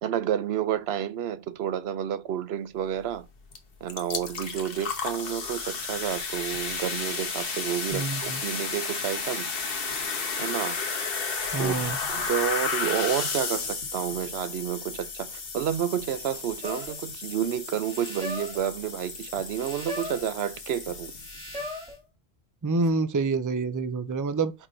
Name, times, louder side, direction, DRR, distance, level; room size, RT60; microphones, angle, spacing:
voice 1, 0.0-3.3 3.8-9.5 10.4-10.8 11.6-11.8 12.1-21.1, right 10 dB, 85° right, 0.9 m, -30 dB
sound 1, 3.5-3.6 3.9-21.6, left 4 dB, 65° left, 1.3 m, -33 dB
voice 2, 7.9-8.4 11.5-12.0 22.6-24.5, right 3 dB, 25° right, 0.5 m, -27 dB
sound 2, 16.6-17.0 17.8-18.7 19.5-20.3 21.2-22.0 22.8-22.9, left 2 dB, 5° right, 3.2 m, -38 dB
4.9 x 4.3 x 5.0 m
omnidirectional pair, 1.0 m